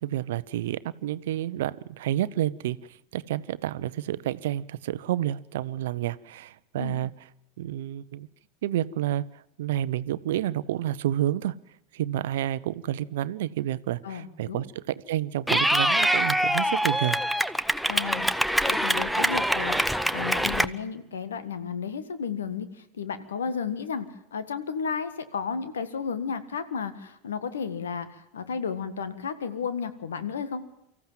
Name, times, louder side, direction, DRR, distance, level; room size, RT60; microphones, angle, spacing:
voice 1, 0.0-2.8 3.1-7.1 7.6-8.3 8.6-11.5 11.9-17.2, right 12 dB, 70° right, 17 dB, 0.7 m, -29 dB
voice 2, 14.0-14.6 17.9-18.3 18.6-30.6, left 6 dB, 80° left, 12 dB, 1.6 m, -33 dB
Clapping / Cheering, 15.5-20.7, equal, ahead, 0.8 m, -24 dB
24.5 x 14.5 x 7.5 m, 0.87 s
hypercardioid pair, 85°, 0 cm